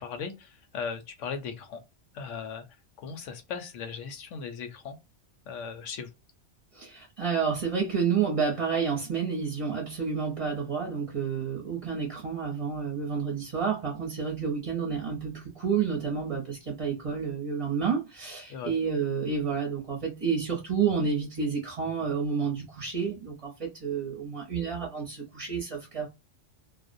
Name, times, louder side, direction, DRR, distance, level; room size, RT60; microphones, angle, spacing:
voice 1, 0.0-1.8 2.1-2.6 3.0-5.0 5.5-6.1 18.5-18.7, left 6 dB, 85° left, 1.0 m, -37 dB
voice 2, 6.7-26.1, right 6 dB, 35° right, 0.6 m, -30 dB
2.5 x 2.0 x 2.5 m
omnidirectional pair, 1.2 m